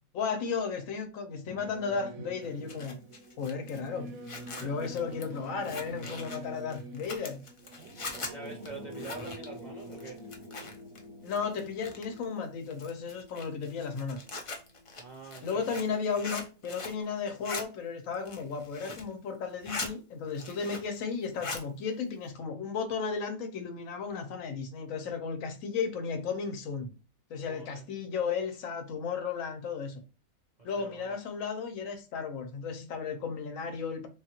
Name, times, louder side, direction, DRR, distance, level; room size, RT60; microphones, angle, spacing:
voice 1, 0.1-3.0 3.4-4.1 4.6-7.4 11.2-14.3 15.4-26.9 27.3-30.0 30.6-34.1, left 5 dB, 75° left, 1.1 m, -34 dB
Singing / Musical instrument, 1.5-13.3, right 2 dB, 80° right, 1.0 m, -47 dB
Zipper (clothing), 2.4-11.0 11.3-12.2 12.7-17.0 17.3-17.6 18.1-19.1 19.4-19.9 20.3-21.0 21.2-21.7, left 3 dB, 55° left, 0.3 m, -41 dB
voice 2, 4.5-4.9 8.3-10.2 15.0-16.0 27.5-27.8 30.6-31.2, right 3 dB, 50° right, 0.5 m, -45 dB
sound 1, 8.8-17.3, left 3 dB, 35° left, 0.8 m, -53 dB
3.5 x 2.4 x 2.8 m
omnidirectional pair, 1.5 m